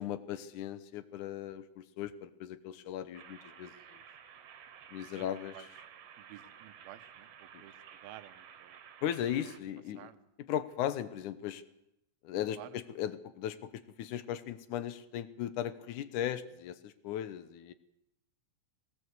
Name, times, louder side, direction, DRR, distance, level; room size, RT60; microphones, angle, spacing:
voice 1, 0.0-4.0 4.9-5.5 7.5-7.6 9.0-10.1 10.5-11.6 12.2-17.7, left 11 dB, 70° left, 13 dB, 2.1 m, -37 dB
sound 1, 3.1-9.6, right 8 dB, 70° right, 2.9 m, -53 dB
voice 2, 5.2-5.7 6.2-8.8 9.4-9.5 10.0-10.3 12.6-12.8, right 13 dB, 85° right, 11 dB, 2.8 m, -52 dB
20.5 x 18.0 x 8.1 m, 0.83 s
omnidirectional pair, 4.2 m